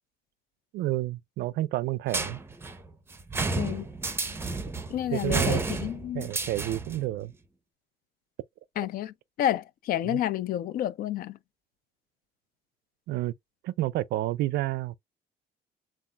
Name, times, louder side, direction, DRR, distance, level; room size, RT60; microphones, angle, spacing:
voice 1, 0.7-2.4 5.1-5.6 6.1-7.3 10.0-10.2 13.1-13.3 13.6-15.0, right 15 dB, 75° right, 0.4 m, -30 dB
sound 1, 2.1-7.1, right 3 dB, 15° right, 0.7 m, -32 dB
voice 2, 4.9-6.3 8.8-11.4, left 12 dB, 60° left, 0.4 m, -30 dB
7.0 x 2.4 x 2.3 m
cardioid pair, 110°, 17 cm